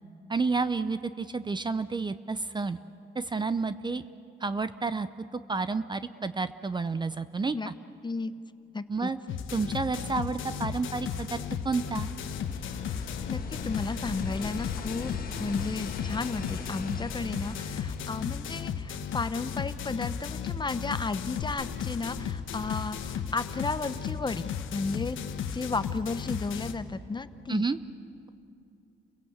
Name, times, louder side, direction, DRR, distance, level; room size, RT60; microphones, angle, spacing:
voice 1, 0.3-2.8 3.1-4.0 4.4-5.1 5.3-7.7 8.9-9.2 9.5-12.1 27.5-27.8, right 4 dB, 20° right, 13 dB, 0.6 m, -30 dB
voice 2, 8.7-9.1 13.3-15.1 15.4-25.2 25.5-27.7, left 3 dB, 20° left, 12 dB, 0.8 m, -33 dB
sound 1, 9.3-26.7, left 7 dB, 80° left, 1.3 m, -35 dB
sound 2, 11.0-19.3 21.4-21.5, left 5 dB, 50° left, 1.5 m, -41 dB
30.0 x 16.5 x 8.0 m, 2.6 s
cardioid pair, 90°, 20 cm